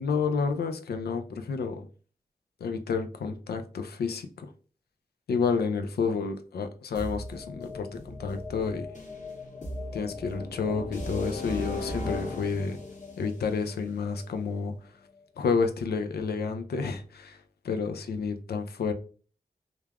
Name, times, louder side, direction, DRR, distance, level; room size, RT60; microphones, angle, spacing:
voice 1, 0.0-1.9 2.6-4.5 5.3-8.9 9.9-12.8 13.2-14.8 15.4-18.9, left 5 dB, 85° left, 6 dB, 0.4 m, -30 dB
sound 1, 6.9-14.8, left 2 dB, 50° left, 1.2 m, -38 dB
3.2 x 2.2 x 2.3 m, 0.40 s
cardioid pair, 45°, 16 cm